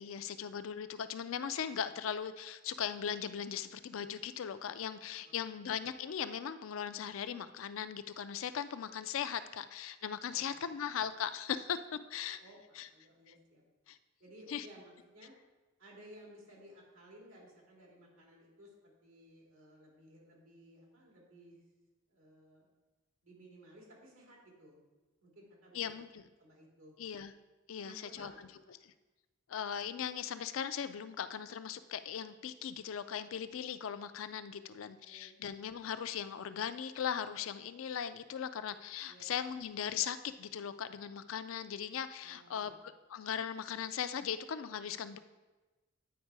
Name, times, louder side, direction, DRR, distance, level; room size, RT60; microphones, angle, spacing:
voice 1, 0.0-12.4 12.8-12.9 13.9-14.0 14.5-14.7 25.7-26.3 27.0-27.3 27.7-28.9 29.5-45.2, left 8 dB, 75° left, 12 dB, 0.4 m, -39 dB
voice 2, 5.2-5.7 10.3-10.8 12.4-13.6 14.2-15.3 15.8-21.6 22.1-22.7 23.2-24.8 25.2-26.0 26.4-27.0 27.8-28.4 34.6-35.4 39.1-39.3 42.2-42.8, equal, 90° right, -2 dB, 2.4 m, -57 dB
9.3 x 4.4 x 4.7 m, 1.2 s
head